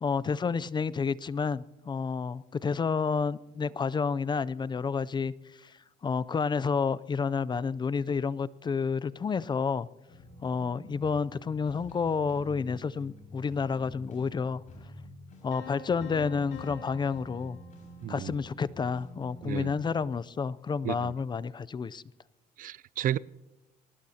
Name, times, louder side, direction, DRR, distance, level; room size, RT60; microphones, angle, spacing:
voice 1, 0.0-5.3 5.6-5.7 6.0-9.9 10.4-14.6 15.4-17.6 18.1-22.0, left 5 dB, 25° left, 0.5 m, -30 dB
sound 1, 10.1-19.9, equal, 50° left, 5.8 m, -48 dB
sound 2, 15.5-18.4, left 6 dB, 90° left, 2.7 m, -47 dB
voice 2, 18.0-18.3 19.4-19.7 20.8-21.1 22.6-23.2, right 12 dB, 55° right, 0.4 m, -32 dB
23.0 x 19.5 x 2.9 m
cardioid pair, 110°, 17 cm